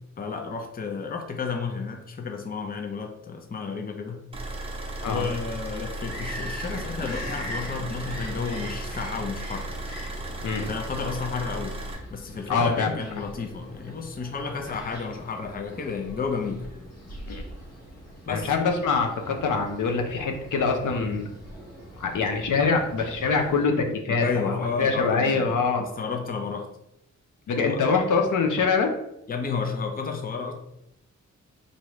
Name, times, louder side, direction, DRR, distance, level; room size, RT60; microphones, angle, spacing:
voice 1, 0.2-4.2 5.1-9.7 10.6-11.8 12.1-16.7 18.3-18.5 24.2-26.7 27.6-27.8 29.3-30.5, left 5 dB, 30° left, 4 dB, 0.5 m, -32 dB
sound 1, 4.3-11.9, right 1 dB, 20° right, 0.7 m, -35 dB
Bird vocalization bird call bird song, 5.9-23.6, equal, 55° left, 1.1 m, -42 dB
voice 2, 12.5-12.9 13.2-13.3 17.3-17.4 18.3-21.3 22.0-25.8 27.5-28.9, left 4 dB, 90° left, 3 dB, 0.7 m, -24 dB
4.7 x 2.7 x 3.1 m, 0.84 s
wide cardioid pair, 140°, 30 cm